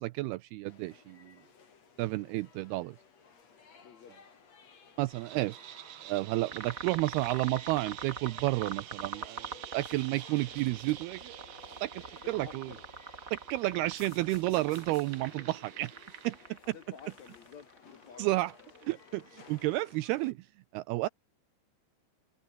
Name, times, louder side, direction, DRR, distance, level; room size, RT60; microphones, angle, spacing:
voice 1, 0.0-1.4 2.0-3.0 5.0-5.6 6.0-11.5 11.8-12.7 13.3-15.9 16.2-16.4 16.7-16.8 18.2-18.5 18.8-21.1, right 19 dB, 90° right, 2.2 m, -31 dB
sound 1, 0.7-20.3, left 6 dB, 40° left, 4.1 m, -58 dB
voice 2, 2.0-2.3 3.8-4.1 11.7-11.8 12.2-12.8 16.7-18.3, left 7 dB, 60° left, 1.9 m, -51 dB
sound 2, 5.1-16.6, right 12 dB, 65° right, 2.9 m, -49 dB
sound 3, 6.5-19.8, right 4 dB, 25° right, 2.2 m, -44 dB
open air
omnidirectional pair, 5.2 m